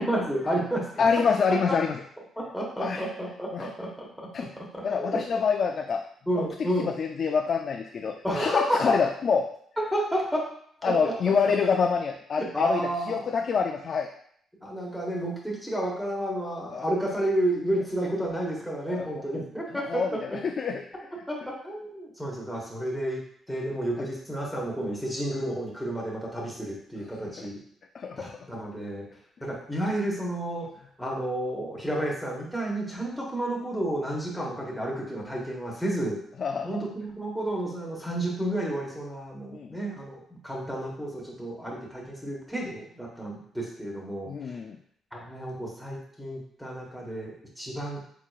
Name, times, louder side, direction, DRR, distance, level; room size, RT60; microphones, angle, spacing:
voice 1, 0.0-1.0 1.5-1.8 2.4-4.3 4.6-5.4 6.3-6.9 8.2-9.0 9.8-10.5 10.9-11.1 12.4-13.3 14.6-20.4 21.3-23.2 23.5-27.6 28.2-29.1 29.4-30.7 31.0-36.2 36.6-40.2 40.4-44.6 45.1-48.1, right 1 dB, ahead, -2 dB, 1.3 m, -31 dB
voice 2, 1.0-2.0 2.8-3.1 3.5-3.7 4.3-4.5 4.8-6.0 6.4-9.5 10.8-14.1 16.7-16.8 18.9-19.1 19.9-20.8 27.4-27.5 27.9-28.3 36.4-36.8 39.5-39.8 44.3-44.8, left 5 dB, 50° left, 4 dB, 0.3 m, -26 dB
4.7 x 3.7 x 2.4 m, 0.65 s
cardioid pair, 90°, 0 cm